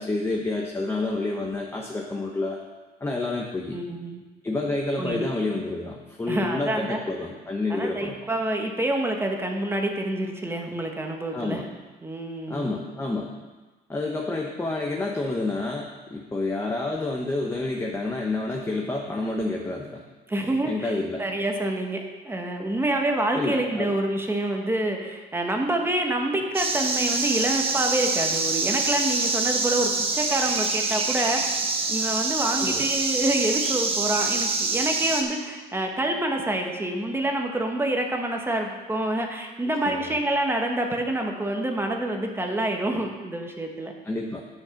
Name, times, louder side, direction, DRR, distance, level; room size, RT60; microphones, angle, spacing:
voice 1, 0.0-2.6 3.0-3.8 4.4-8.2 11.3-11.7 12.5-13.3 13.9-20.0 20.6-21.2 23.3-23.9 32.6-32.9 39.8-40.1 44.0-44.4, left 2 dB, 15° left, 0 dB, 1.0 m, -29 dB
voice 2, 3.7-4.2 5.0-5.3 6.3-7.0 7.7-11.7 12.0-12.7 20.3-22.0 22.2-31.6 31.9-43.9, right 1 dB, 15° right, 2 dB, 1.2 m, -27 dB
sound 1, 26.5-35.2, right 3 dB, 35° right, 1.2 m, -26 dB
8.9 x 6.4 x 5.8 m, 1.2 s
cardioid pair, 110°, 17 cm